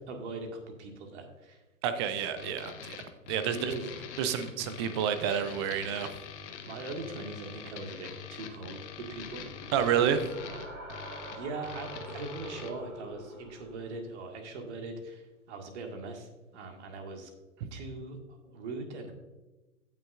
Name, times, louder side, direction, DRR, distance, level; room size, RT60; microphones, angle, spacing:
voice 1, 0.1-1.6 1.9-2.1 3.5-3.9 4.6-4.7 6.7-9.4 10.4-17.3 17.7-18.2 18.4-19.1, right 3 dB, 50° right, 3 dB, 1.9 m, -41 dB
voice 2, 1.8-3.0 3.3-3.7 4.2-6.1 9.7-10.3 17.6-17.7, right 8 dB, 20° right, 10 dB, 0.4 m, -29 dB
sound 1, 2.4-12.7, left 7 dB, 55° left, 1.2 m, -44 dB
sound 2, 8.9-14.0, right 1 dB, 80° right, 3.0 m, -44 dB
16.5 x 6.3 x 2.5 m, 1.1 s
figure-of-eight pair, 115°, 43 cm